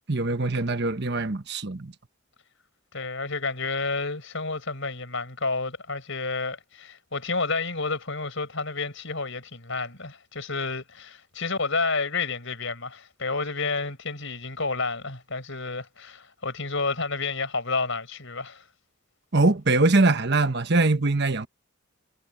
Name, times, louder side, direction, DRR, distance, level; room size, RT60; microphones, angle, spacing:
voice 1, 0.1-1.9 19.3-21.5, right 2 dB, 50° right, 1.2 m, -22 dB
voice 2, 2.9-18.6, left 4 dB, 60° left, 6.1 m, -30 dB
head